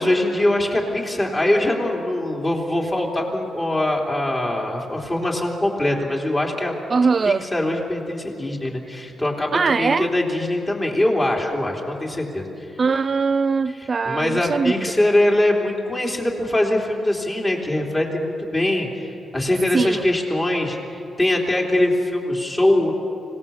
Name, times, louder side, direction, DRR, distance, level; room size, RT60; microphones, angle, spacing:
voice 1, 0.0-6.7 7.2-12.4 13.8-19.0 19.3-22.9, left 1 dB, 25° left, -1 dB, 3.5 m, -22 dB
voice 2, 6.9-7.4 9.5-10.1 12.8-14.7 19.7-20.0, right 4 dB, 40° right, 11 dB, 0.4 m, -21 dB
25.5 x 18.0 x 7.2 m, 2.8 s
cardioid pair, 110°, 0 cm